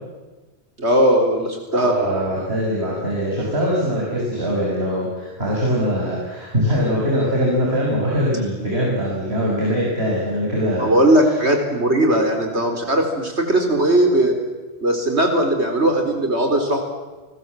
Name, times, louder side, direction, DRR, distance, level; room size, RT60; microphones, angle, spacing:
voice 1, 0.8-1.9 10.8-14.4 14.8-16.8, right 1 dB, 90° right, 4 dB, 4.5 m, -18 dB
voice 2, 1.7-10.9, equal, 70° right, -4 dB, 6.5 m, -22 dB
30.0 x 20.5 x 7.7 m, 1.2 s
omnidirectional pair, 1.1 m